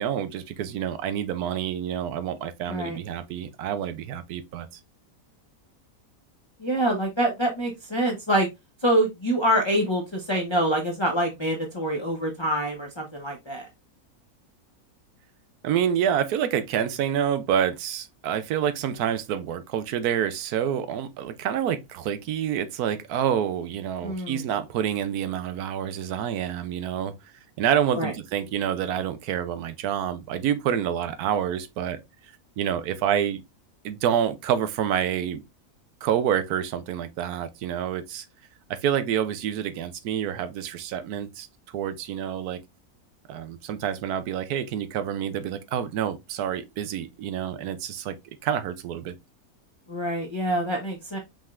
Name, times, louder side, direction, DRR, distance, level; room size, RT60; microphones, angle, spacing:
voice 1, 0.0-4.7 15.6-27.1 27.6-32.0 32.6-33.4 33.8-35.4 36.0-38.2 38.7-41.5 41.7-42.6 43.3-48.1 48.4-49.2, right 9 dB, 85° right, 1.2 m, -27 dB
voice 2, 6.6-8.5 8.8-13.7 24.0-24.4 28.0-28.1 49.9-51.2, right 1 dB, 20° left, 0.8 m, -25 dB
5.4 x 3.5 x 2.4 m
omnidirectional pair, 1.6 m